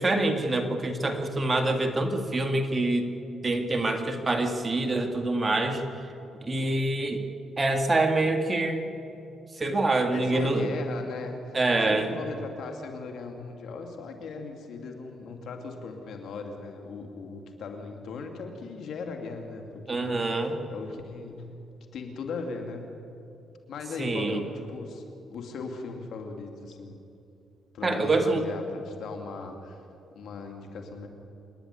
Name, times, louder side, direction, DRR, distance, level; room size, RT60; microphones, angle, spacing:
voice 1, 0.0-3.1 3.4-5.8 6.4-7.2 7.6-8.8 9.6-10.7 11.5-12.1 19.9-20.6 24.0-24.4 27.8-28.4, right 2 dB, 25° right, 5 dB, 2.0 m, -25 dB
voice 2, 10.1-11.6 11.9-21.5 21.9-23.0 23.7-27.0 27.7-29.8 30.1-31.1, left 4 dB, 70° left, 4 dB, 2.7 m, -38 dB
27.0 x 10.5 x 9.7 m, 2.7 s
cardioid pair, 90°, 0 cm